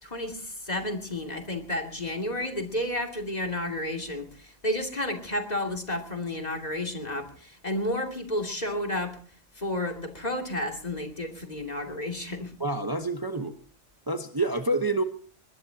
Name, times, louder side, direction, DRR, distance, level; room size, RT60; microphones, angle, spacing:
voice 1, 0.0-9.2 9.6-12.5, left 1 dB, 35° left, 4 dB, 2.7 m, -31 dB
voice 2, 12.6-13.5 14.1-15.0, right 2 dB, 20° right, 7 dB, 1.1 m, -27 dB
21.5 x 20.5 x 2.9 m, 0.43 s
omnidirectional pair, 1.2 m